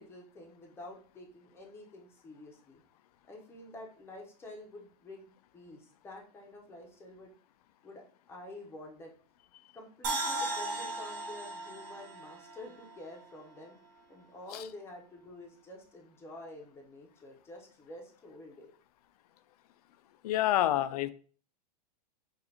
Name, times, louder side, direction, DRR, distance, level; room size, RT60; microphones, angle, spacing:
voice 1, 0.0-2.8 3.3-7.3 7.8-8.0 8.3-9.1 9.7-13.8 14.1-18.7, left 1 dB, 10° left, -1 dB, 0.8 m, -49 dB
sound 1, 10.0-13.3 13.6-13.7, right 2 dB, 45° right, 0.9 m, -37 dB
voice 2, 20.2-21.1, left 13 dB, 65° left, 13 dB, 0.4 m, -28 dB
4.9 x 2.5 x 2.8 m, 0.42 s
hypercardioid pair, 135°, 21 cm